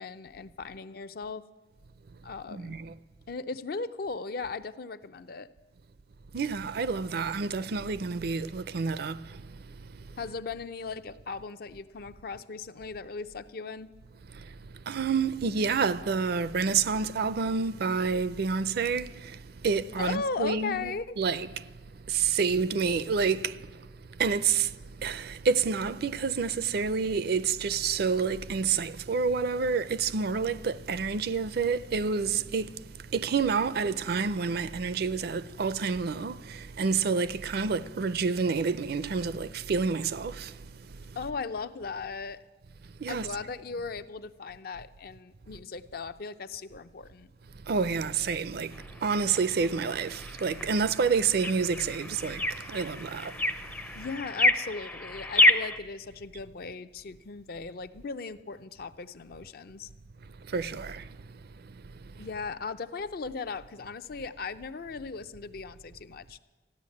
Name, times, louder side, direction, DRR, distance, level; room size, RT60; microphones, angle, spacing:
voice 1, 0.0-1.5 2.2-2.8 3.3-5.5 10.2-13.9 20.0-21.1 41.2-42.4 43.1-47.3 53.9-59.9 62.2-66.4, left 4 dB, 60° left, 0.6 m, -37 dB
voice 2, 2.5-2.9 6.3-9.6 14.3-14.5 14.9-21.7 22.1-23.9 24.2-32.8 33.1-40.6 41.1-41.2 43.0-43.3 47.7-53.5 53.9-54.0 60.5-61.1, right 5 dB, 60° right, 0.5 m, -29 dB
sound 1, 48.7-55.8, left 1 dB, 10° left, 0.5 m, -29 dB
14.0 x 10.5 x 8.5 m
head